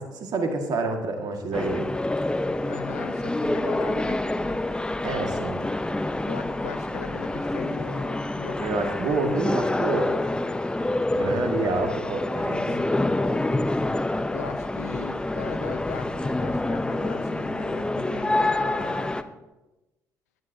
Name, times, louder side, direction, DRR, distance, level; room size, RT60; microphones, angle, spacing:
voice 1, 0.0-1.9 5.0-5.6 8.6-10.1 11.1-12.8, right 3 dB, 55° right, 4 dB, 1.9 m, -28 dB
sound 1, 1.5-19.2, left 2 dB, 10° left, 0.7 m, -27 dB
voice 2, 2.7-4.3 6.2-8.6 12.5-13.0 14.3-19.1, left 8 dB, 80° left, 10 dB, 0.7 m, -39 dB
15.5 x 10.0 x 2.8 m, 1.0 s
figure-of-eight pair, 50°, 8 cm